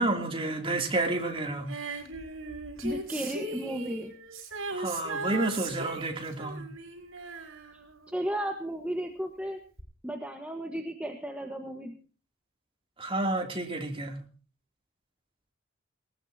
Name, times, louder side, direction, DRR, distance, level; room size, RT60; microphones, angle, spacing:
voice 1, 0.0-1.7 4.7-6.7 13.0-14.2, right 2 dB, 25° right, 2.8 m, -30 dB
Female singing, 1.7-8.6 9.8-9.9, right 3 dB, 75° right, 5.3 m, -38 dB
voice 2, 2.8-4.1 8.1-9.6 10.0-12.0, equal, 5° right, 1.4 m, -34 dB
19.5 x 19.0 x 2.8 m
head